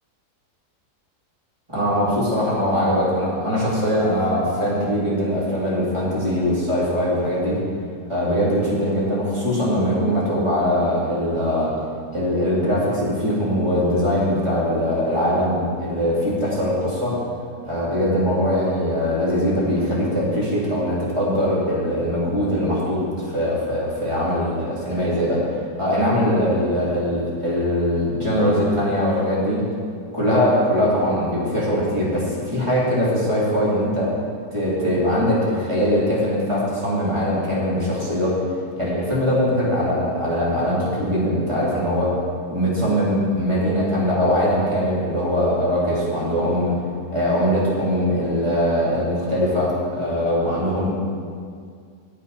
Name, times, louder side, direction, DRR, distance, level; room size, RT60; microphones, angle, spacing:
voice 1, 1.7-7.6 8.1-11.7 12.1-17.2 17.6-25.4 25.8-29.6 30.1-34.1 34.5-38.3 38.7-42.1 42.5-46.8 47.1-50.9, equal, 20° right, -8 dB, 2.8 m, -21 dB
8.7 x 8.4 x 5.5 m, 2.2 s
omnidirectional pair, 1.7 m